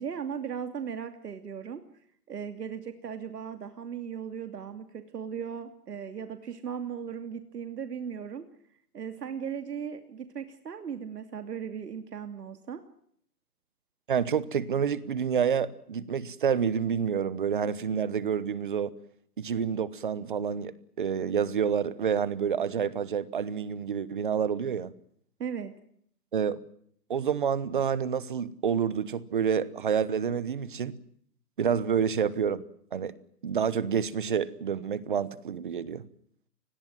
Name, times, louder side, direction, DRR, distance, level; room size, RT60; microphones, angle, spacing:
voice 1, 0.0-1.8 2.3-8.5 8.9-12.8 25.4-25.7, right 7 dB, 75° right, 2.8 m, -37 dB
voice 2, 14.1-18.9 19.4-24.9 26.3-26.6 27.1-30.9 31.6-32.6 32.9-33.1 33.4-36.0, right 7 dB, 30° right, 1.1 m, -28 dB
29.0 x 20.5 x 7.5 m
hypercardioid pair, 180°, 48 cm